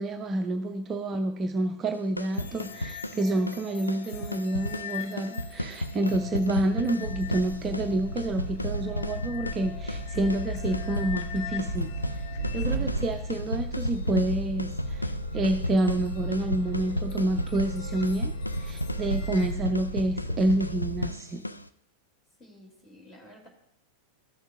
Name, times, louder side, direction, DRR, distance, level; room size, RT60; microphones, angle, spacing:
voice 1, 0.0-11.9 12.2-12.3 12.5-18.3 18.6-21.4, right 1 dB, 25° right, 5 dB, 0.6 m, -28 dB
sound 1, 1.9-21.7, left 1 dB, 85° left, 0.3 m, -35 dB
sound 2, 2.3-19.5, left 10 dB, 45° left, 0.7 m, -45 dB
sound 3, 7.0-21.1, right 1 dB, 90° right, 0.6 m, -34 dB
voice 2, 12.7-13.0 22.4-23.5, left 1 dB, 20° left, 0 dB, 2.6 m, -50 dB
14.0 x 6.4 x 2.4 m, 0.74 s
figure-of-eight pair, 90°, 0 cm